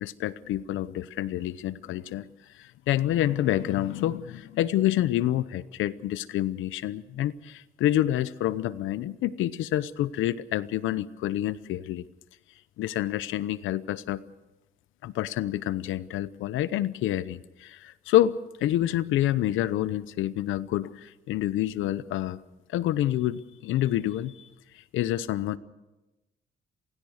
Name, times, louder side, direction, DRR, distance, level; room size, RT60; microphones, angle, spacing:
voice 1, 0.0-2.3 2.5-12.0 12.8-14.2 15.0-22.4 22.7-24.5 24.7-25.6, left 13 dB, 90° left, 16 dB, 0.8 m, -28 dB
28.0 x 17.0 x 6.5 m, 1.0 s
cardioid pair, 90°, 20 cm